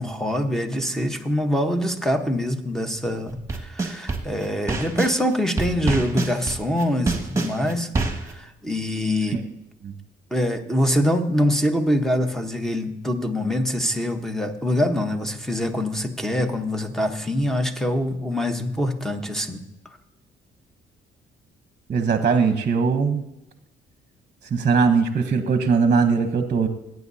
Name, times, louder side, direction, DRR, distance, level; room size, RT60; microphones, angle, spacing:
voice 1, 0.0-9.4 10.3-19.6, left 1 dB, ahead, 6 dB, 1.2 m, -24 dB
sound 1, 3.3-5.2 5.6-8.3, right 3 dB, 15° right, 1.8 m, -25 dB
voice 2, 21.9-23.2 24.5-26.7, right 5 dB, 40° right, 7 dB, 1.0 m, -20 dB
17.0 x 9.4 x 2.8 m, 0.89 s
cardioid pair, 90°, 20 cm